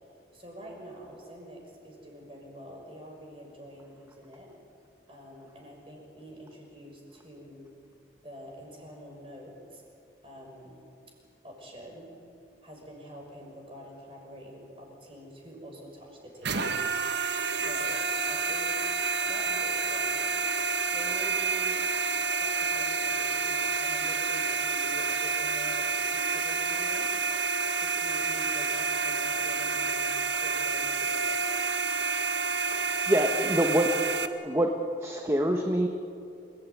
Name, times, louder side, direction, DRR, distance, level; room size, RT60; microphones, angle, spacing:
voice 1, 0.3-4.5 5.1-7.7 8.2-9.8 10.2-10.9 11.4-12.1 12.6-18.8 19.2-21.9 22.4-31.5, right 1 dB, 30° right, 0 dB, 6.2 m, -46 dB
sound 1, 16.4-34.3, right 4 dB, 80° right, 1.5 m, -29 dB
voice 2, 32.7-33.9 34.4-34.7 35.0-35.9, right 1 dB, 15° right, 3 dB, 1.3 m, -26 dB
28.5 x 17.5 x 9.6 m, 2.6 s
head